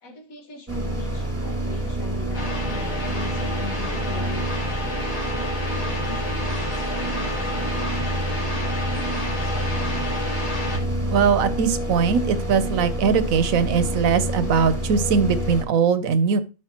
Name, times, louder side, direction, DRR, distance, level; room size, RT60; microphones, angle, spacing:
voice 1, 0.0-4.4 5.3-8.1, left 4 dB, 80° left, 5 dB, 1.9 m, -40 dB
sound 1, 0.7-15.6, right 1 dB, 10° right, 1.5 m, -28 dB
sound 2, 2.3-10.8, left 2 dB, 35° left, 1.9 m, -31 dB
voice 2, 11.1-16.4, right 6 dB, 75° right, 13 dB, 1.2 m, -20 dB
12.0 x 5.4 x 2.9 m, 0.31 s
omnidirectional pair, 1.4 m